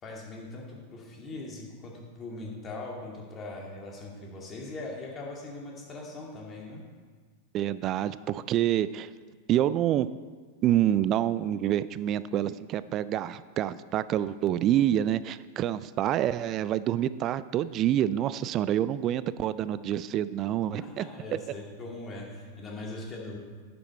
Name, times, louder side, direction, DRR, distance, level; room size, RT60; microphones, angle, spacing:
voice 1, 0.0-6.8 20.8-23.4, left 2 dB, 25° left, -2 dB, 2.4 m, -40 dB
voice 2, 7.5-9.1 9.5-10.1 10.6-21.0, right 11 dB, 35° right, 16 dB, 0.3 m, -27 dB
11.0 x 7.1 x 4.3 m, 1.5 s
figure-of-eight pair, 90°, 0 cm